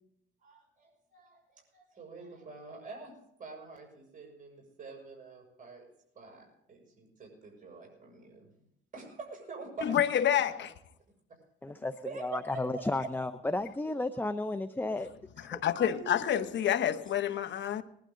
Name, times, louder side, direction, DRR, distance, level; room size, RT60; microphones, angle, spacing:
voice 1, 0.4-5.9 6.1-8.5 8.9-10.0 10.3-10.4 11.3-11.4 12.0-13.1 15.4-16.7 17.0-17.1, right 3 dB, 40° right, 6.4 m, -46 dB
voice 2, 9.8-10.7 15.4-17.8, left 10 dB, 65° left, 1.1 m, -28 dB
voice 3, 11.6-15.1 15.5-15.6, left 2 dB, 10° left, 0.6 m, -33 dB
20.5 x 12.0 x 3.8 m
cardioid pair, 90°, 20 cm